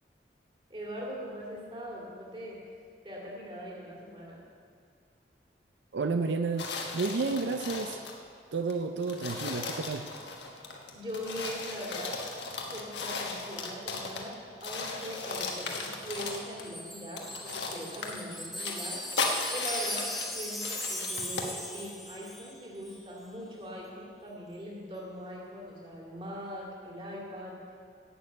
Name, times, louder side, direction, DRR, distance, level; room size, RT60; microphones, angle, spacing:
voice 1, 0.7-2.6 3.0-4.4 10.5-10.7 10.9-12.2 12.6-19.2 19.5-27.6, equal, 30° right, -3 dB, 2.4 m, -41 dB
voice 2, 5.9-6.7 6.9-8.0 8.5-10.1, right 4 dB, 80° right, 7 dB, 0.5 m, -31 dB
sound 1, 6.6-8.2 8.7-8.8 9.0-14.3 14.6-16.7 17.2-21.5, left 4 dB, 75° left, 1.2 m, -37 dB
Wind chime, 15.3-22.6 22.8-23.0, left 1 dB, ahead, 0.8 m, -39 dB
11.5 x 6.7 x 8.5 m, 2.2 s
head